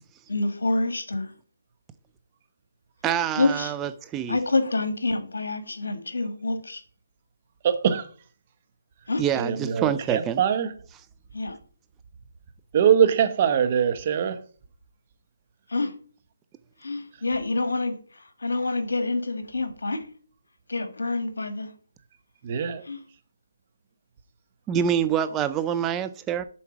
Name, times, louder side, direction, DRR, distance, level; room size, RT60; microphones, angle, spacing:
voice 1, 0.3-1.3 3.4-3.7 4.3-6.8 9.1-9.2 11.3-11.6 15.7-15.9 16.8-20.1 20.7-21.7 22.8-23.0, left 2 dB, 80° left, 1.5 m, -27 dB
voice 2, 3.0-4.4 9.2-10.4 24.7-26.4, right 9 dB, 15° right, 0.4 m, -26 dB
voice 3, 7.6-8.1 9.4-10.7 12.7-14.4 22.4-22.8, right 8 dB, 35° right, 0.9 m, -22 dB
7.2 x 4.4 x 6.0 m
figure-of-eight pair, 155°, 0 cm